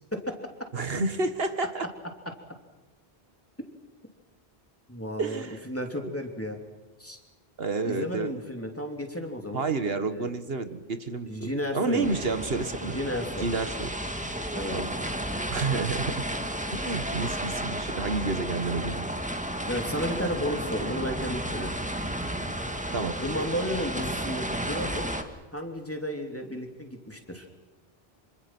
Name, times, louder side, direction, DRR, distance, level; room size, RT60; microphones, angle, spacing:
voice 1, 0.7-1.9 5.2-5.7 6.0-6.1 7.6-8.3 9.5-13.0 13.4-13.9 14.7-14.9 15.5-16.2 16.7-19.0 22.9-23.2, right 3 dB, 75° right, 9 dB, 1.7 m, -30 dB
voice 2, 4.9-6.6 7.0-7.2 7.8-9.6 10.1-10.3 11.3-12.2 12.8-13.5 14.5-14.8 19.7-21.7 23.2-25.1 25.5-27.5, equal, 15° left, 3 dB, 3.0 m, -33 dB
sound 1, 12.0-25.2, right 1 dB, 5° right, 1.8 m, -32 dB
26.5 x 25.5 x 6.1 m, 1.2 s
omnidirectional pair, 1.0 m